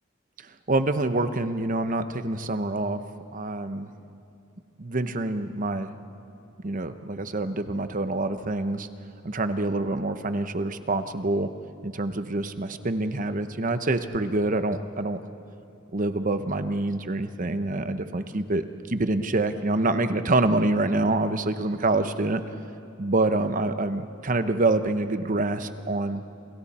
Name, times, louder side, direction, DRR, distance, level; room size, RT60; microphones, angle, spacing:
voice 1, 0.7-3.0 3.3-3.9 4.8-5.9 6.6-8.9 9.2-11.5 11.8-15.2 15.9-22.4 23.0-26.2, right 2 dB, 40° right, 10 dB, 0.9 m, -26 dB
29.5 x 27.5 x 4.3 m, 2.7 s
head